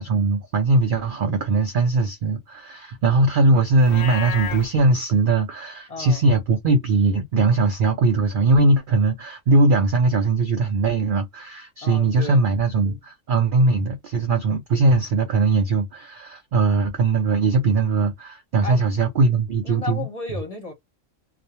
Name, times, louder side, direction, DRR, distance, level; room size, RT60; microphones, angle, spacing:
voice 1, 0.0-20.1, right 3 dB, 75° right, 0.4 m, -20 dB
Livestock farm animals working animals, 3.8-4.7, left 7 dB, 75° left, 0.9 m, -30 dB
voice 2, 5.9-6.2 11.8-12.5 18.6-18.8 19.6-20.7, left 3 dB, 35° left, 0.7 m, -33 dB
2.4 x 2.1 x 2.8 m
omnidirectional pair, 1.5 m